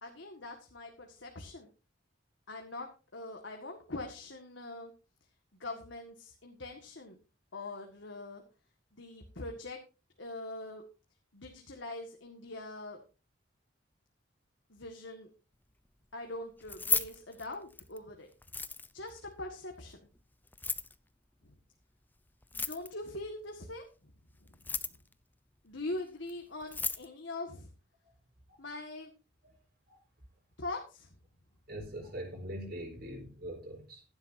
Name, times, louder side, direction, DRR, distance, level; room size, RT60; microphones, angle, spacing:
voice 1, 0.0-1.7 2.5-4.9 5.6-7.2 7.5-8.4 8.9-9.8 10.2-10.8 11.3-13.0 14.7-15.3 16.1-18.3 18.9-20.0 21.4-21.5 22.5-23.8 24.5-24.8 25.6-27.7 28.6-29.1 30.6-31.1, left 2 dB, 70° left, 1.9 m, -42 dB
Keys jangling, 16.6-18.0 18.4-19.1 20.5-20.9 22.4-23.1 24.5-25.1 26.3-26.4 26.6-27.1, left 4 dB, 10° left, 0.6 m, -34 dB
voice 2, 31.7-34.0, right 1 dB, 55° right, 4.5 m, -42 dB
15.5 x 11.5 x 2.7 m
head